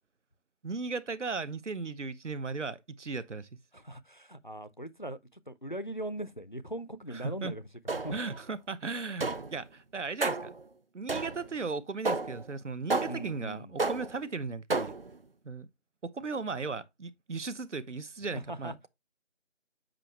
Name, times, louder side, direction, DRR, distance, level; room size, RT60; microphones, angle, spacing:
voice 1, 0.6-3.5 7.1-7.5 8.1-10.5 10.9-15.0 15.4-15.7 16.0-18.9, right 4 dB, 75° right, 0.9 m, -36 dB
voice 2, 3.7-8.2 13.1-13.7 18.3-18.7, right 1 dB, 40° left, 0.4 m, -40 dB
sound 1, 7.9-8.4 9.2-9.6 10.2-10.6 11.1-11.6 12.1-12.5 12.9-13.4 13.8-14.3 14.7-15.2, right 3 dB, 50° right, 0.5 m, -32 dB
7.6 x 5.1 x 3.0 m
figure-of-eight pair, 175°, 36 cm